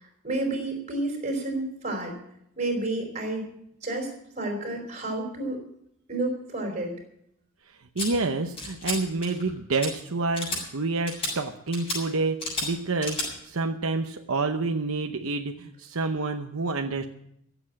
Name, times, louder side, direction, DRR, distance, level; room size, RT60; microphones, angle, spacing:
voice 1, 0.0-2.2 2.6-3.5 3.8-4.1 4.4-5.6 6.1-6.9, right 2 dB, 30° right, 2 dB, 4.6 m, -30 dB
voice 2, 7.7-17.1, right 3 dB, 70° right, 5 dB, 0.9 m, -28 dB
sound 1, 8.0-8.1 8.6-9.0 9.2-9.5 9.8-9.9 10.3-10.6 11.1-11.3 11.7-12.0 12.4-12.7 13.0-13.3, left 2 dB, 25° left, 7.3 m, -31 dB
15.5 x 8.1 x 8.6 m, 0.74 s
head